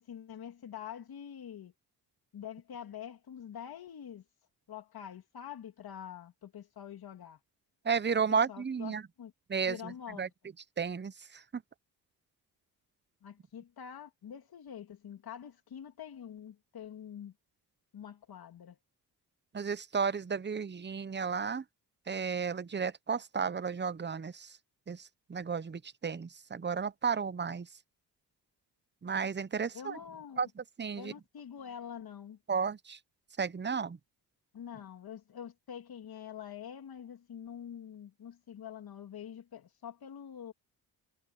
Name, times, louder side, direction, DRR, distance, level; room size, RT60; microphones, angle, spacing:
voice 1, 0.0-1.7 2.3-4.2 4.7-7.4 8.3-8.9 9.2-9.3 9.7-10.3 13.2-17.3 17.9-18.8 29.7-30.4 31.0-32.4 34.5-40.5, left 9 dB, 60° left, 2.4 m, -46 dB
voice 2, 7.8-9.0 9.5-10.3 10.8-11.6 19.5-21.6 22.1-24.6 24.9-27.7 29.0-30.0 30.4-31.1 32.5-33.0 33.4-34.0, right 6 dB, 25° right, 0.9 m, -33 dB
supercardioid pair, 65°, 41 cm